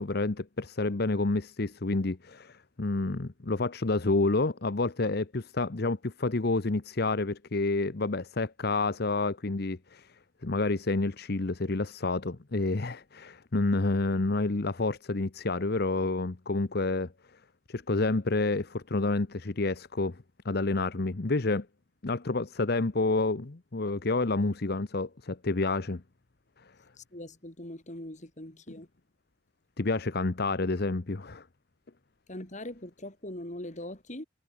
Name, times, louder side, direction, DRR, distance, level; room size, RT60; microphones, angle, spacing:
voice 1, 0.0-10.1 10.4-17.1 17.7-21.7 22.0-26.0 29.8-31.4, left 3 dB, 55° left, 0.9 m, -29 dB
voice 2, 27.0-28.9 32.3-34.3, left 1 dB, 40° left, 4.2 m, -41 dB
head